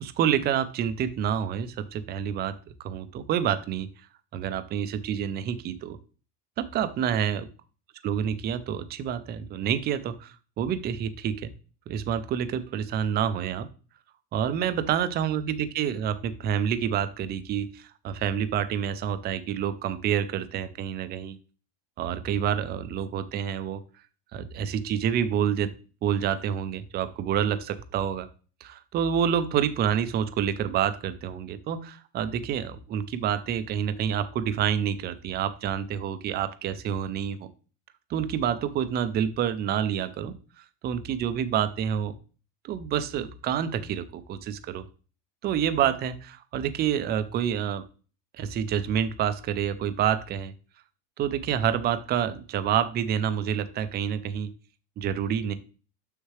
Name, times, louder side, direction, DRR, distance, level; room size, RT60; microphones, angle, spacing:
voice 1, 0.0-3.9 4.3-6.0 6.6-7.5 8.0-11.5 11.9-13.7 14.3-21.4 22.0-23.8 24.3-25.7 26.0-28.3 28.6-37.5 38.1-40.3 40.8-42.1 42.6-44.8 45.4-47.8 48.3-50.5 51.2-54.5 55.0-55.5, right 9 dB, 25° right, 12 dB, 0.3 m, -28 dB
6.6 x 6.5 x 3.1 m, 0.36 s
cardioid pair, 150°, 44 cm